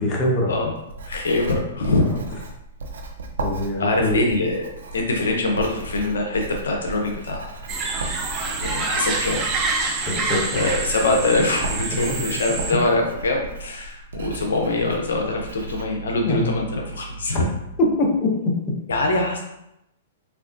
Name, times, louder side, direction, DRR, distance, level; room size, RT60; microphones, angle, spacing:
voice 1, 0.0-0.5 2.0-2.2 3.4-4.2 10.1-10.6 16.3-16.5 17.8-18.3, left 1 dB, 30° left, -2 dB, 0.8 m, -23 dB
Writing, 0.8-15.8, right 2 dB, 80° right, 0.5 m, -36 dB
voice 2, 1.0-2.1 3.8-7.5 8.6-9.4 10.5-17.5 18.9-19.4, left 2 dB, 85° left, 1 dB, 0.5 m, -23 dB
sound 1, 7.7-12.7, right 3 dB, 25° right, 0.5 m, -27 dB
3.4 x 2.4 x 2.5 m, 0.83 s
hypercardioid pair, 125°, 0 cm